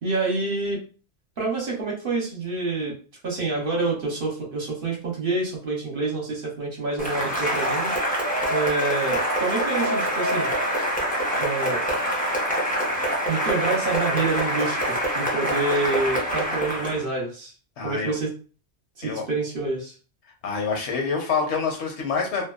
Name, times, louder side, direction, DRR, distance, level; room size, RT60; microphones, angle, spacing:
voice 1, 0.0-0.8 1.4-3.0 3.2-7.9 8.5-10.5 11.4-11.8 13.3-17.5 17.8-18.3 19.0-19.9, right 3 dB, 55° right, -2 dB, 0.9 m, -27 dB
Cheering / Applause, 7.0-17.0, equal, 10° left, 0.5 m, -25 dB
voice 2, 17.8-18.1 19.0-19.3 20.4-22.4, left 5 dB, 70° left, 2 dB, 0.9 m, -26 dB
2.6 x 2.2 x 2.3 m, 0.37 s
omnidirectional pair, 1.2 m